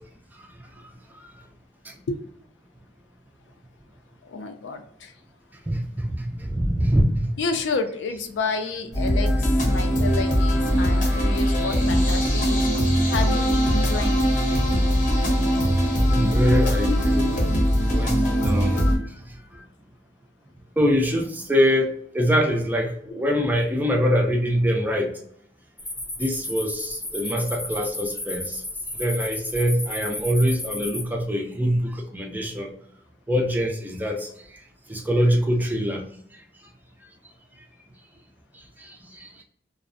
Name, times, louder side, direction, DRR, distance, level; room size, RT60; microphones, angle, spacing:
voice 1, 4.2-5.1 7.4-12.6 13.1-14.3 29.4-29.5, left 4 dB, 85° left, 7 dB, 0.4 m, -30 dB
voice 2, 5.7-7.3 16.1-17.4 17.9-18.8 20.8-21.9 22.1-25.1 26.2-28.6 29.0-32.7 33.3-34.3 34.9-36.1, equal, 10° right, 2 dB, 0.4 m, -23 dB
sound 1, 8.9-19.0, equal, 45° left, 0.7 m, -21 dB
sound 2, 25.8-31.0, left 2 dB, 10° left, 0.7 m, -33 dB
2.5 x 2.0 x 2.5 m, 0.67 s
head